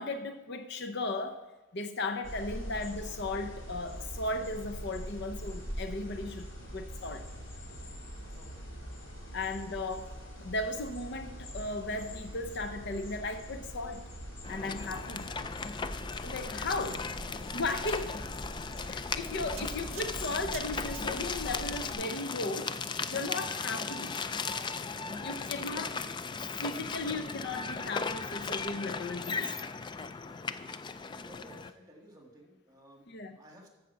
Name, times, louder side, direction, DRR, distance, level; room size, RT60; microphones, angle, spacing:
voice 1, 0.0-1.4 1.7-7.2 9.3-14.1 14.5-15.3 16.2-17.1 17.5-18.2 18.9-22.8 23.1-24.2 25.2-26.0 26.6-29.5 33.1-33.4, left 2 dB, 55° left, 8 dB, 0.7 m, -36 dB
sound 1, 2.2-21.9, equal, 75° left, 3.6 m, -43 dB
sound 2, 14.4-31.7, left 5 dB, 25° left, 0.3 m, -37 dB
sound 3, 19.6-21.5 22.2-22.3, right 13 dB, 85° right, 0.5 m, -49 dB
voice 2, 31.1-33.1 33.4-33.7, equal, 20° right, 1 dB, 1.7 m, -55 dB
13.5 x 4.9 x 6.9 m, 1.1 s
head